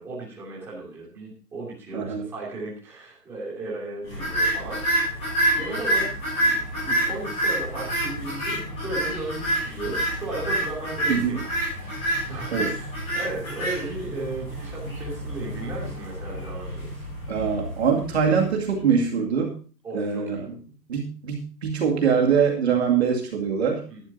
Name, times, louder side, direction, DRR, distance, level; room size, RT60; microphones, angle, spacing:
voice 1, 0.0-5.1 5.5-6.1 6.4-11.5 11.8-12.9 13.1-17.0 19.8-20.4 23.9-24.0, right 2 dB, 5° right, -7 dB, 2.8 m, -35 dB
voice 2, 1.9-2.3 11.1-11.4 12.5-12.7 17.3-19.5 19.9-20.6 20.9-23.8, right 6 dB, 40° right, 0 dB, 2.4 m, -23 dB
sound 1, 4.1-18.4, right 1 dB, 10° left, 7.4 m, -28 dB
17.0 x 12.0 x 2.7 m, 0.36 s
hypercardioid pair, 175°, 49 cm